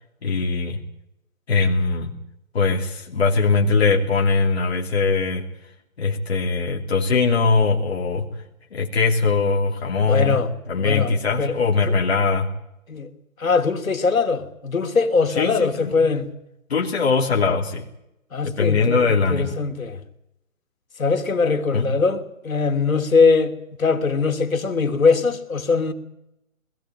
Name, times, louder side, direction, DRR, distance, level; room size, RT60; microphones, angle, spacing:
voice 1, 0.2-0.8 1.5-2.1 2.5-5.4 6.0-8.3 8.7-10.4 10.7-12.5 15.4-15.9 16.7-17.9 18.4-19.5 21.7-21.9, left 4 dB, 50° left, 3.1 m, -21 dB
voice 2, 10.0-11.6 11.8-11.9 12.9-13.1 13.4-16.3 18.3-20.0 21.0-23.5 23.8-25.9, left 4 dB, 80° left, 2.9 m, -21 dB
21.0 x 15.5 x 8.9 m
hypercardioid pair, 175°, 40 cm